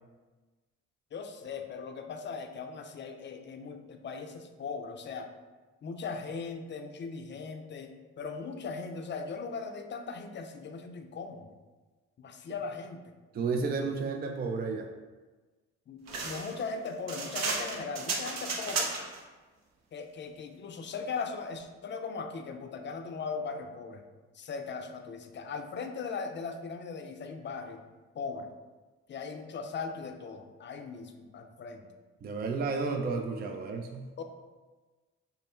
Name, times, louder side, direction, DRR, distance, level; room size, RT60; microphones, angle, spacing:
voice 1, 1.1-5.3 5.8-11.4 12.2-13.1 15.9-18.9 19.9-24.0 24.3-27.8 28.1-28.5 29.1-31.9 34.2-34.3, left 5 dB, 40° left, 5 dB, 0.5 m, -39 dB
voice 2, 13.3-14.9 32.2-34.1, right 4 dB, 30° right, 3 dB, 0.4 m, -32 dB
sound 1, 16.1-19.2, right 4 dB, 60° right, 0.8 m, -34 dB
5.4 x 2.1 x 4.3 m, 1.3 s
cardioid pair, 90°, 30 cm